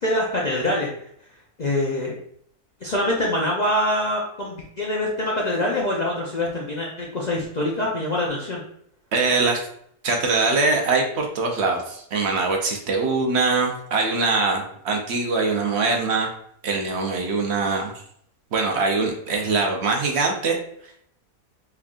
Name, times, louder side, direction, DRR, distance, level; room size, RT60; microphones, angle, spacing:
voice 1, 0.0-0.9 1.6-2.2 2.8-8.6, left 1 dB, 70° left, -3 dB, 0.4 m, -24 dB
voice 2, 9.1-9.6 10.0-16.3 16.6-17.9 18.5-20.6, right 3 dB, 60° right, 1 dB, 0.7 m, -22 dB
3.7 x 3.4 x 2.4 m, 0.69 s
omnidirectional pair, 1.6 m